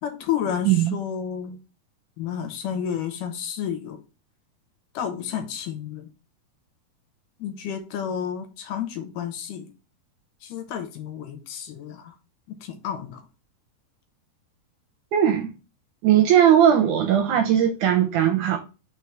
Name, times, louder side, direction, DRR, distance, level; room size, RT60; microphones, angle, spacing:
voice 1, 0.0-1.6 2.2-4.0 4.9-6.1 7.4-9.7 10.4-12.2 12.6-13.2, left 8 dB, 75° left, 2.2 m, -31 dB
voice 2, 0.7-1.0 15.1-15.5 16.0-18.6, right 10 dB, 75° right, 1.9 m, -18 dB
4.7 x 4.6 x 4.7 m
omnidirectional pair, 4.2 m